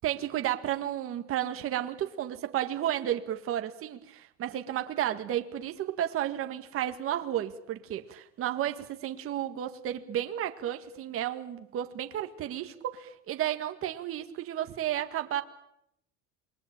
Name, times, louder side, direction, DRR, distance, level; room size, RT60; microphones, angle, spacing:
voice 1, 0.0-15.4, right 12 dB, 40° right, 1.9 m, -32 dB
27.5 x 22.0 x 8.9 m
supercardioid pair, 130°, 33 cm